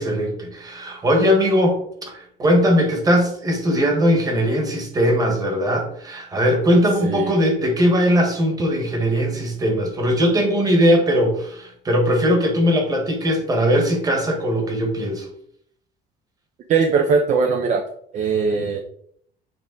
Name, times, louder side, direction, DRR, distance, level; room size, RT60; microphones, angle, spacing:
voice 1, 0.0-15.3, equal, 20° right, 2 dB, 1.3 m, -19 dB
voice 2, 7.0-7.3 16.7-17.8 18.1-18.8, right 5 dB, 40° right, 5 dB, 0.5 m, -20 dB
7.9 x 3.5 x 3.8 m, 0.67 s
cardioid pair, 170°, 19 cm